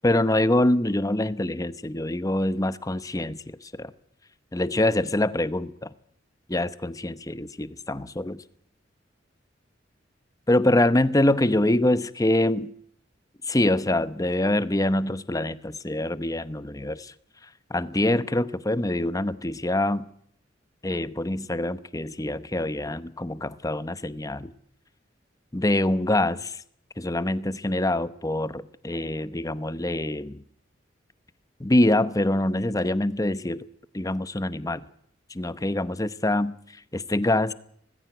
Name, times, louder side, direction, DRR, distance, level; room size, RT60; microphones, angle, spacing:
voice 1, 0.0-3.9 4.5-5.9 6.5-8.4 10.5-12.7 13.4-17.1 17.7-20.1 20.8-24.5 25.5-26.6 27.0-30.4 31.6-33.6 33.9-34.9 35.3-37.5, left 1 dB, 20° left, 15 dB, 0.9 m, -25 dB
19.5 x 16.0 x 9.3 m, 0.67 s
head